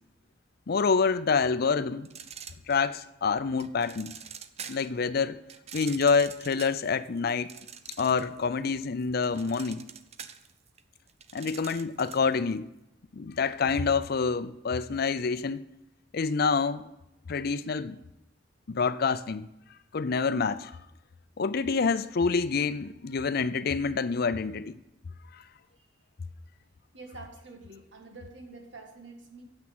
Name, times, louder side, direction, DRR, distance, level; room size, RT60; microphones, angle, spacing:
voice 1, 0.7-2.1 2.7-4.1 4.7-5.4 5.7-7.5 8.0-9.8 11.3-12.6 13.1-15.6 16.1-16.9 17.3-18.0 18.7-19.5 19.9-20.7 21.4-24.7, left 5 dB, 55° left, 0.5 m, -27 dB
sound 1, 2.0-3.1 3.6-5.0 5.5-8.4 8.7-12.3, right 8 dB, 35° right, 0.6 m, -45 dB
voice 2, 26.9-29.4, right 3 dB, 80° right, 2.1 m, -47 dB
9.3 x 7.6 x 7.7 m
head